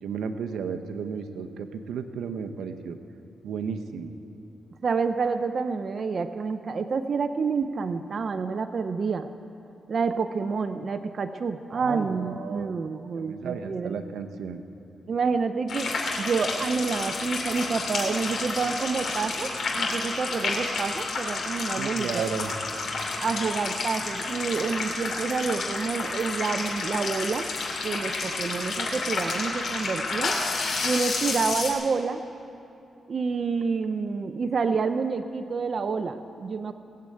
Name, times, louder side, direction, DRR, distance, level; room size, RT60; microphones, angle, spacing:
voice 1, 0.0-3.0 3.4-4.1 11.7-12.7 13.1-14.6 21.8-22.5, right 6 dB, 85° right, 8 dB, 0.8 m, -33 dB
voice 2, 4.8-9.3 9.9-14.0 15.1-22.2 23.2-27.5 27.8-30.4 30.8-32.2 33.1-36.7, right 5 dB, 55° right, 8 dB, 0.5 m, -28 dB
sound 1, 15.7-31.7, left 3 dB, 70° left, 2.8 m, -30 dB
19.0 x 7.8 x 8.5 m, 2.7 s
cardioid pair, 80°, 0 cm